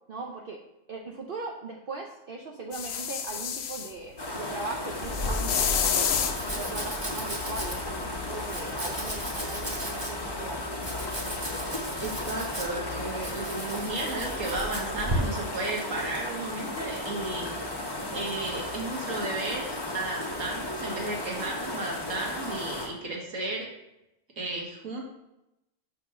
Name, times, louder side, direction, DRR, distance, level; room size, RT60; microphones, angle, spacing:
voice 1, 0.1-0.6 0.9-6.1 6.5-10.6, right 3 dB, 55° right, 1 dB, 0.7 m, -39 dB
sound 1, 2.7-3.9 5.0-6.4 8.5-8.6, left 8 dB, 60° left, 0.8 m, -28 dB
sound 2, 4.2-22.9, left 2 dB, 20° left, 1.0 m, -35 dB
Domestic sounds home sounds, 5.0-15.2, equal, 20° right, 1.2 m, -36 dB
voice 2, 12.0-17.5 18.1-23.7 24.4-25.0, right 2 dB, 85° right, -1 dB, 1.9 m, -34 dB
6.8 x 3.7 x 6.1 m, 0.89 s
omnidirectional pair, 1.3 m